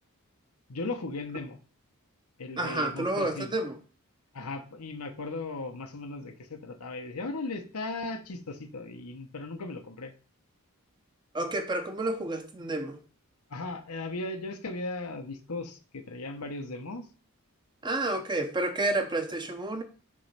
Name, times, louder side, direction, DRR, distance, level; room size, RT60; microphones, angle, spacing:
voice 1, 0.7-1.6 2.4-3.5 4.3-10.1 13.5-17.1, left 2 dB, 80° left, 1.0 m, -37 dB
voice 2, 2.6-3.8 11.3-13.0 17.8-19.8, right 2 dB, 20° right, 0.8 m, -30 dB
6.4 x 3.2 x 5.7 m
head